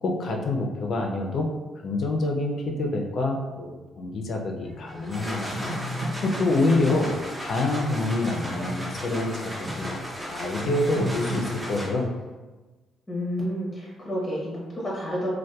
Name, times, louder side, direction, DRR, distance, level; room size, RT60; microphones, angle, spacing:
voice 1, 0.0-1.5 1.8-5.5 6.0-7.1 7.4-10.0 10.3-12.1, left 2 dB, 60° left, 2 dB, 0.4 m, -26 dB
sound 1, 4.6-11.6, equal, 65° right, 0.6 m, -36 dB
sound 2, 4.9-12.2, equal, 15° right, 0.5 m, -36 dB
voice 2, 13.1-15.3, equal, 15° left, -5 dB, 0.7 m, -30 dB
2.7 x 2.1 x 2.2 m, 1.2 s
cardioid pair, 90°, 0 cm